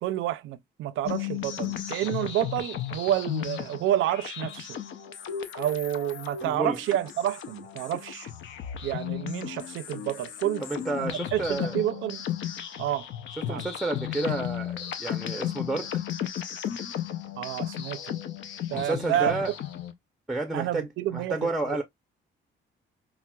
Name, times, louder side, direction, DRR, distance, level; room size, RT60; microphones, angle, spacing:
voice 1, 0.0-4.8 5.5-8.3 8.8-10.6 11.0-12.2 12.8-13.1 13.4-13.6 17.4-18.2 18.7-19.4 20.5-21.5, right 12 dB, 85° right, 0.5 m, -29 dB
sound 1, 1.1-19.9, left 10 dB, 70° left, 0.6 m, -35 dB
voice 2, 6.4-6.8 10.6-11.8 13.4-16.0 18.7-19.5 20.3-21.8, right 2 dB, ahead, 0.6 m, -31 dB
5.5 x 2.1 x 2.3 m
cardioid pair, 90°, 20 cm